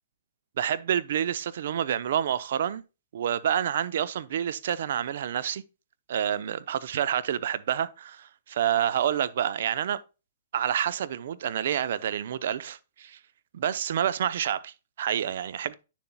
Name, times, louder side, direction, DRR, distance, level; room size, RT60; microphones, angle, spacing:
voice 1, 0.6-2.8 3.1-5.6 6.1-10.0 10.5-13.2 13.5-15.7, right 9 dB, 65° right, 0.6 m, -28 dB
9.3 x 7.1 x 2.2 m
hypercardioid pair, 140°, 0 cm